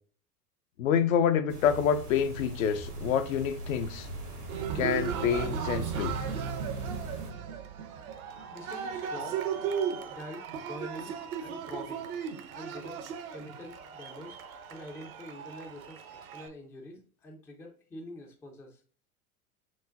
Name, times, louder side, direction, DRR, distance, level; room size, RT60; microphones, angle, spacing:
voice 1, 0.8-4.1 4.7-6.2, left 8 dB, 65° left, 0.6 m, -27 dB
sound 1, 1.5-7.3, right 1 dB, 85° right, 1.5 m, -41 dB
Cheering, 4.5-16.5, right 7 dB, 65° right, 0.8 m, -36 dB
voice 2, 8.5-9.4 10.1-11.1 11.4-12.1 12.5-13.0 13.3-14.4 14.7-18.8, left 1 dB, 5° left, 0.3 m, -45 dB
6.1 x 2.2 x 2.5 m
figure-of-eight pair, 90°, 45 cm